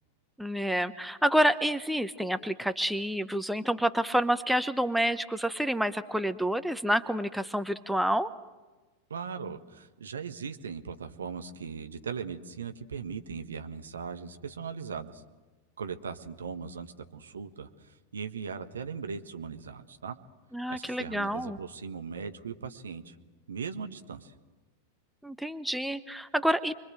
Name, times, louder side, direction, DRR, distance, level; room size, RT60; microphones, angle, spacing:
voice 1, 0.4-8.3 20.5-21.6 25.2-26.8, equal, ahead, 11 dB, 0.9 m, -28 dB
voice 2, 9.1-15.2 15.8-20.2 20.7-23.1 23.5-24.3, right 6 dB, 70° right, 8 dB, 1.5 m, -39 dB
29.5 x 23.5 x 7.9 m, 1.2 s
figure-of-eight pair, 90°, 0 cm